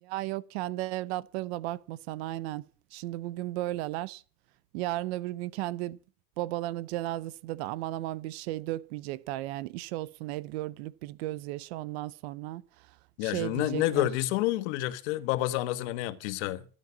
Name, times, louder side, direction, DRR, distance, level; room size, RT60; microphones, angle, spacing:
voice 1, 0.0-2.6 2.9-4.2 4.7-6.0 6.4-13.0 13.2-14.1, right 16 dB, 45° right, 0.7 m, -35 dB
voice 2, 13.2-16.7, left 15 dB, 50° left, 1.4 m, -29 dB
13.0 x 12.5 x 7.3 m
supercardioid pair, 170°, 43 cm